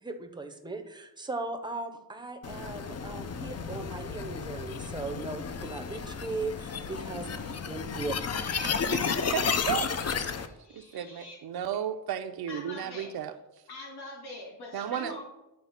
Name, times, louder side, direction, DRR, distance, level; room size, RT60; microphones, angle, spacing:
voice 1, 0.0-7.3 7.7-8.2, right 3 dB, 10° right, 7 dB, 0.6 m, -38 dB
sound 1, 2.4-10.5, left 6 dB, 40° left, 0.5 m, -32 dB
voice 2, 8.3-9.0 10.5-11.4 12.5-13.1 13.7-15.3, left 2 dB, 80° left, -3 dB, 2.1 m, -44 dB
voice 3, 8.9-9.9 10.7-13.3 14.7-15.1, right 9 dB, 70° right, 8 dB, 0.6 m, -33 dB
9.6 x 3.3 x 5.7 m, 0.96 s
wide cardioid pair, 145°, 38 cm